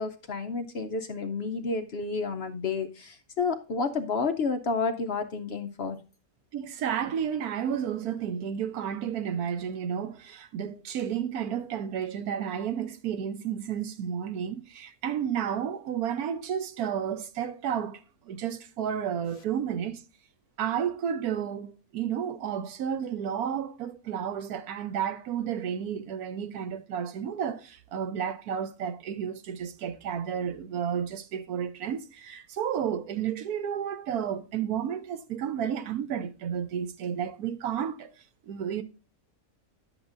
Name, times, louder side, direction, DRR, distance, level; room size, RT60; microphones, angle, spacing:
voice 1, 0.0-6.0, left 4 dB, 55° left, 0.7 m, -30 dB
voice 2, 6.5-20.0 20.6-38.1 38.5-38.8, right 8 dB, 80° right, 1.3 m, -32 dB
10.5 x 7.9 x 2.5 m
omnidirectional pair, 1.6 m